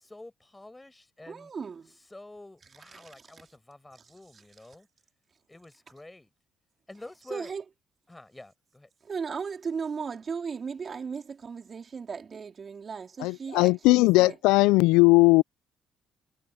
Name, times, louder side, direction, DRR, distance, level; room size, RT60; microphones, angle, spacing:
voice 1, 0.0-1.5 1.9-4.9 5.5-6.3 6.9-7.5 8.1-8.9, left 2 dB, 15° left, 5.9 m, -48 dB
voice 2, 1.3-1.9 3.0-3.1 7.3-7.6 9.0-14.4, right 5 dB, 45° right, 4.2 m, -36 dB
voice 3, 13.2-15.4, left 22 dB, 85° left, 0.3 m, -19 dB
hypercardioid pair, 55°, 0 cm